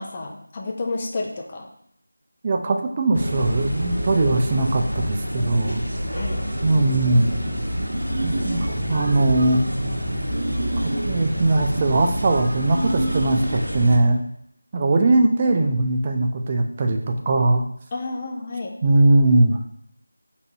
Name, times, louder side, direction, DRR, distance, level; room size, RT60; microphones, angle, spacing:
voice 1, 0.0-1.7 6.1-6.4 8.5-8.8 17.9-18.7, left 3 dB, 25° left, 1 dB, 0.6 m, -31 dB
voice 2, 2.4-5.8 6.6-7.3 8.2-9.6 10.8-14.2 14.7-17.0 17.3-17.6 18.8-19.6, right 2 dB, 25° right, 3 dB, 0.4 m, -20 dB
sound 1, 3.1-14.0, equal, 85° right, 1.0 m, -28 dB
sound 2, 6.3-13.8, right 1 dB, 55° right, 0.8 m, -31 dB
4.0 x 2.6 x 4.4 m, 0.72 s
figure-of-eight pair, 165°, 0 cm